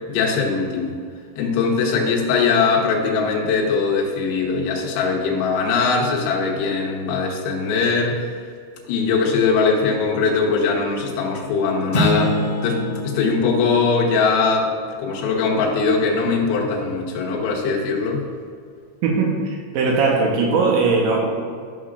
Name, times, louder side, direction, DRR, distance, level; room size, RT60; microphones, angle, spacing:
voice 1, 0.1-1.0 1.4-8.4 8.9-14.7 15.0-18.2, left 4 dB, 80° left, -2 dB, 3.8 m, -21 dB
sound 1, 11.9-14.7, equal, 55° left, 1.1 m, -25 dB
voice 2, 19.0-21.3, right 4 dB, 75° right, -2 dB, 2.8 m, -19 dB
13.0 x 6.3 x 2.5 m, 2.2 s
omnidirectional pair, 6.0 m